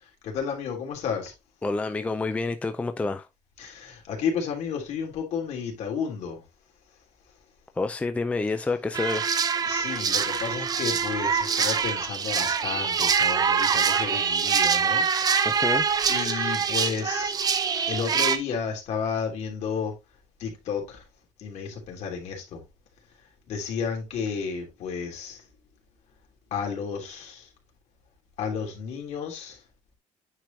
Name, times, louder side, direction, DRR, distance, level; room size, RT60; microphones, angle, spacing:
voice 1, 0.0-1.3 3.6-6.4 9.6-15.4 16.1-17.4 17.9-19.9 20.4-21.0 21.4-22.6 23.5-25.4 26.5-27.5 28.4-29.6, left 6 dB, 65° left, 3.0 m, -32 dB
voice 2, 1.6-3.3 7.8-9.3 10.3-10.5 15.4-15.9, left 3 dB, 10° left, 0.5 m, -28 dB
sound 1, 8.9-18.4, right 6 dB, 30° right, 0.7 m, -24 dB
9.1 x 5.0 x 2.8 m
cardioid pair, 170°, 12 cm